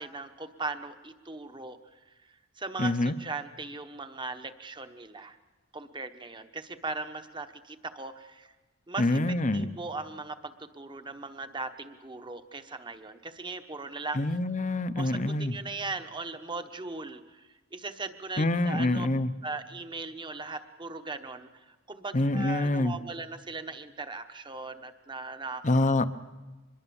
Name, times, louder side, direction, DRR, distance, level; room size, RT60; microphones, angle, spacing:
voice 1, 0.0-1.8 2.6-5.4 5.7-8.5 8.9-14.2 15.0-17.4 17.7-19.1 19.4-26.0, right 3 dB, 25° right, 9 dB, 1.1 m, -39 dB
voice 2, 2.8-3.1 9.0-9.7 14.1-15.6 18.4-19.3 22.1-23.0 25.6-26.0, left 2 dB, 35° left, 12 dB, 0.8 m, -26 dB
24.5 x 22.0 x 7.1 m, 1.2 s
head